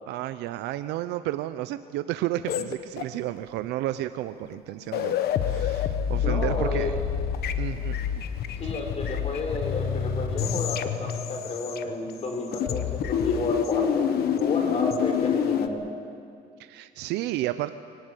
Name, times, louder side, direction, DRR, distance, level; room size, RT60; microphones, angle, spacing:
voice 1, 0.1-6.9 7.6-8.1 16.6-17.7, right 14 dB, 90° right, 11 dB, 0.7 m, -32 dB
sound 1, 2.5-3.4 4.4-4.6 4.8-12.2 12.5-15.7, left 8 dB, 70° left, 1.3 m, -27 dB
voice 2, 6.2-6.9 8.6-15.8, left 2 dB, 40° left, 3 dB, 5.2 m, -31 dB
23.0 x 19.0 x 8.3 m, 2.3 s
cardioid pair, 110°, 17 cm